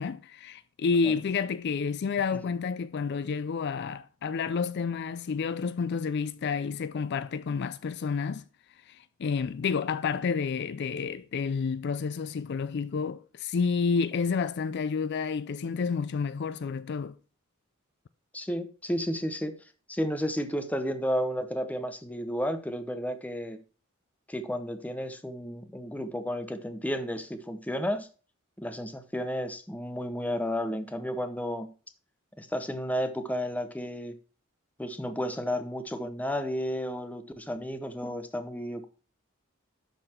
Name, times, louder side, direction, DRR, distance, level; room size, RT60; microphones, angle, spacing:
voice 1, 0.0-8.5 8.9-17.2, left 5 dB, 55° left, 0.4 m, -30 dB
voice 2, 18.3-19.5 19.9-23.6 24.3-28.1 28.6-31.7 32.4-34.1 34.8-38.9, equal, 5° left, 0.8 m, -32 dB
12.0 x 4.0 x 4.4 m
head